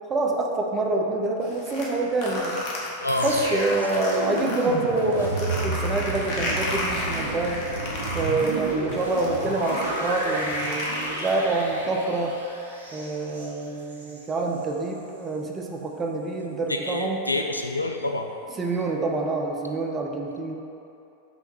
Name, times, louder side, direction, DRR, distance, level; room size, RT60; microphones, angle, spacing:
voice 1, 0.1-2.6 3.2-7.6 8.1-12.4 12.9-17.2 18.6-20.6, right 3 dB, 20° right, 1 dB, 0.7 m, -26 dB
sound 1, 1.4-4.6 5.0-11.6, left 1 dB, 50° left, 1.2 m, -33 dB
voice 2, 3.0-3.6 16.7-18.3, left 2 dB, 85° left, 4 dB, 0.4 m, -27 dB
sound 2, 3.2-14.3 14.6-14.8, right 2 dB, 70° right, 0.9 m, -31 dB
6.0 x 3.5 x 5.3 m, 2.8 s
figure-of-eight pair, 90°, 0 cm